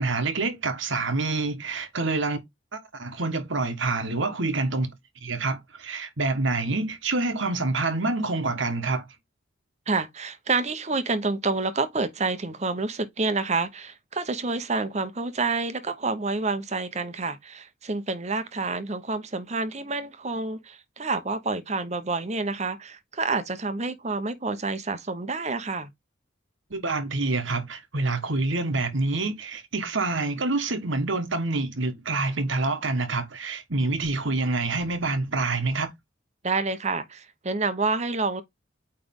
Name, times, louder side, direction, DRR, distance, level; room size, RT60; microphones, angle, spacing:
voice 1, 0.0-2.4 2.7-4.9 5.2-9.0 26.7-35.9, right 3 dB, 65° right, 1.3 m, -27 dB
voice 2, 9.9-25.9 36.4-38.4, right 3 dB, 35° right, 0.8 m, -28 dB
8.9 x 3.3 x 3.6 m
head